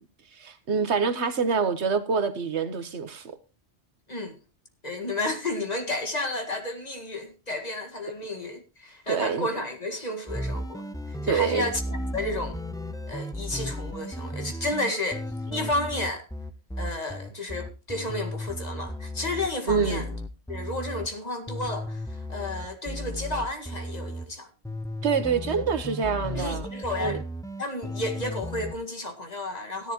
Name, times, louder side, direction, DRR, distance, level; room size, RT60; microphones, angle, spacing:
voice 1, 0.3-3.3 9.1-9.5 11.3-11.7 19.7-20.0 25.0-26.7 27.0-27.2, right 5 dB, 80° right, 1.4 m, -26 dB
voice 2, 4.8-12.6 13.1-15.2 15.5-16.3 16.8-20.1 20.5-24.5 25.5-25.6 26.3-27.2 27.6-29.9, left 2 dB, 35° left, 2.0 m, -32 dB
sound 1, 10.3-21.1 21.5-24.3 24.6-28.7, left 1 dB, 5° left, 0.5 m, -35 dB
16.0 x 10.5 x 3.0 m
omnidirectional pair, 1.1 m